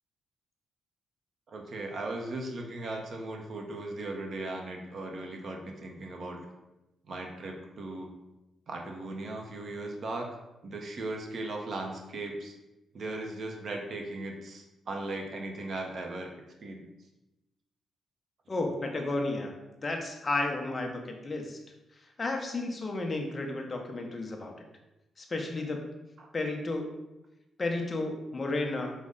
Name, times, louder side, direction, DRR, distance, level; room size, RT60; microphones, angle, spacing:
voice 1, 1.5-6.4 7.1-8.1 8.7-10.4 10.6-12.5 12.9-16.3 16.6-16.8 26.2-26.3, right 2 dB, 45° right, 2 dB, 0.6 m, -37 dB
voice 2, 18.5-19.5 19.8-21.6 22.2-24.5 25.2-25.9 26.3-27.0 27.6-28.9, left 2 dB, 20° left, 3 dB, 0.5 m, -32 dB
5.0 x 2.1 x 3.6 m, 0.97 s
wide cardioid pair, 175°, 0 cm